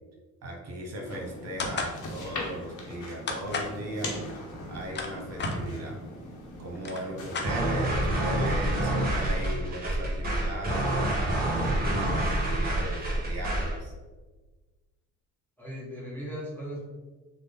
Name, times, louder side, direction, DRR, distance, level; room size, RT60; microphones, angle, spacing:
voice 1, 0.4-4.2 4.7-6.0 6.6-13.9, right 1 dB, 55° right, 1 dB, 0.8 m, -37 dB
sound 1, 1.0-8.2, left 1 dB, 80° left, 0.9 m, -39 dB
sound 2, 1.6-2.0 3.3-3.8 4.7-5.6 6.4-6.5 6.7-7.9, left 4 dB, 35° left, 0.5 m, -33 dB
voice 2, 7.2-7.6 15.6-16.8, equal, 5° left, -6 dB, 0.9 m, -38 dB
sound 3, 7.4-13.8, right 1 dB, 30° right, 1.1 m, -27 dB
3.5 x 2.0 x 3.5 m, 1.3 s
cardioid pair, 90°, 30 cm